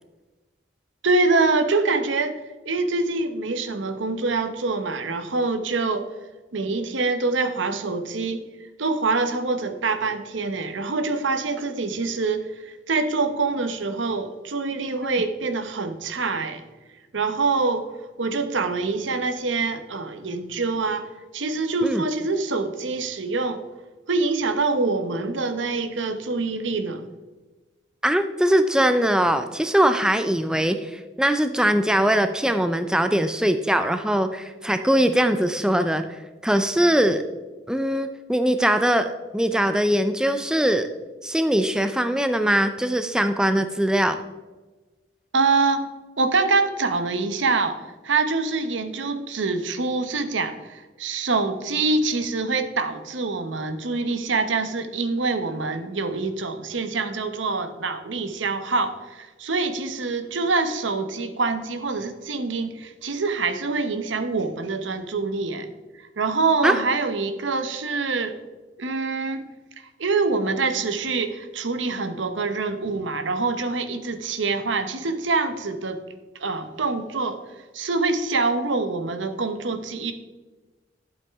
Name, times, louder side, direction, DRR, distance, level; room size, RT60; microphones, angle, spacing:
voice 1, 1.0-6.1 6.5-8.5 8.8-16.6 17.1-17.9 18.2-21.1 21.3-23.6 24.1-27.0 45.3-45.9 46.2-65.7 66.0-68.3 68.8-69.5 69.8-76.0 76.4-77.4 77.7-80.1, right 3 dB, 85° right, 9 dB, 0.9 m, -25 dB
voice 2, 28.0-37.2 37.7-40.9 41.2-44.2 66.6-66.8, right 1 dB, 5° right, 9 dB, 0.4 m, -21 dB
12.0 x 7.7 x 3.5 m, 1.2 s
head